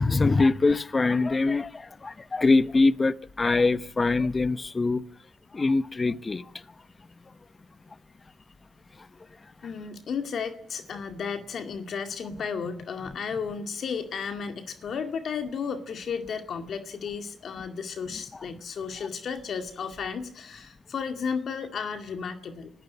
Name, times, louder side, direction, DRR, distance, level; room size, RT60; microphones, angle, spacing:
voice 1, 0.0-5.0 5.5-6.5, left 3 dB, 35° left, 1.0 m, -23 dB
voice 2, 9.6-22.7, left 6 dB, 70° left, 2.1 m, -33 dB
26.5 x 14.0 x 9.4 m
cardioid pair, 70°, 0 cm